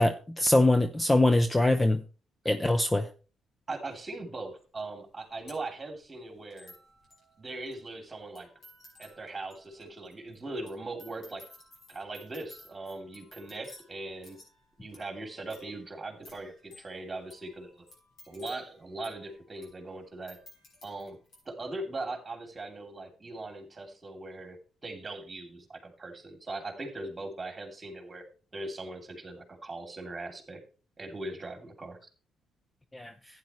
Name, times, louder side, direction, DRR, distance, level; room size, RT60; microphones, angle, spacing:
voice 1, 0.0-2.0 2.5-3.1 32.9-33.1, left 1 dB, 15° left, 9 dB, 0.6 m, -23 dB
voice 2, 3.7-6.7 7.4-8.5 9.0-11.5 11.9-14.4 14.8-17.8 18.2-20.4 20.8-21.2 21.4-28.2 28.5-30.6 31.0-32.0, right 2 dB, 25° right, 4 dB, 2.8 m, -40 dB
sound 1, 3.9-4.0 4.8-4.9 5.0-21.4, left 1 dB, 50° left, 6.2 m, -56 dB
11.5 x 9.6 x 3.1 m, 0.36 s
cardioid pair, 90°, 0 cm